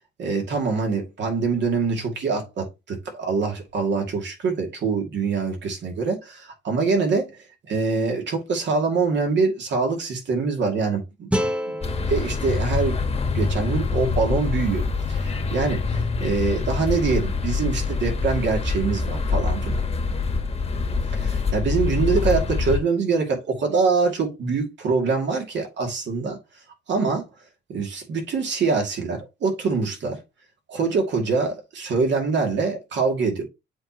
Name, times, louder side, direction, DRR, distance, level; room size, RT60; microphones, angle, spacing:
voice 1, 0.2-11.8 12.1-14.8 15.1-19.8 21.1-26.4 26.9-27.3 27.7-30.2 30.7-33.4, right 4 dB, 65° right, 2.4 m, -24 dB
sound 1, 11.3-14.4, equal, 5° right, 0.8 m, -31 dB
sound 2, 11.8-22.8, left 4 dB, 30° left, 1.3 m, -25 dB
7.7 x 4.3 x 2.9 m
cardioid pair, 90°, 20 cm